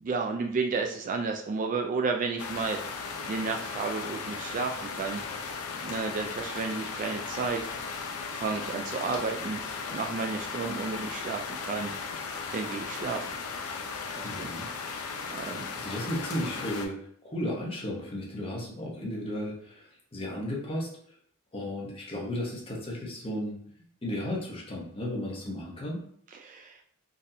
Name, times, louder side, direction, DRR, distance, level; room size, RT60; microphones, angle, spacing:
voice 1, 0.0-2.8 3.3-5.2 5.8-7.7 8.4-9.6 9.9-11.9 12.5-13.3 14.2-14.5 14.8-15.0 15.3-15.7 26.3-26.8, right 4 dB, 35° right, 3 dB, 0.3 m, -32 dB
sound 1, 2.4-16.9, left 5 dB, 75° left, 0.5 m, -36 dB
voice 2, 14.2-14.7 15.4-17.0 17.2-20.9 21.5-23.6 24.0-26.0, left 1 dB, 25° left, -3 dB, 0.9 m, -34 dB
3.9 x 2.6 x 2.7 m, 0.63 s
head